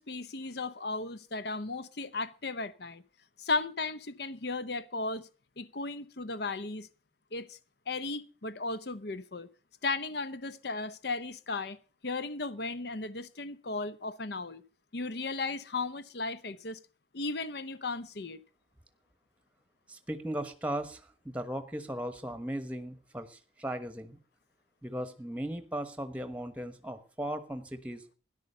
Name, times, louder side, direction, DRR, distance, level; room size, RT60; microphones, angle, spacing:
voice 1, 0.0-3.0 3.4-5.3 5.6-6.9 7.3-7.6 7.9-9.5 9.8-11.8 12.0-14.6 14.9-16.8 17.1-18.4, left 3 dB, 60° left, 0.8 m, -35 dB
voice 2, 19.9-24.2 24.8-28.0, right 1 dB, 5° right, 1.1 m, -37 dB
13.0 x 10.5 x 6.6 m
head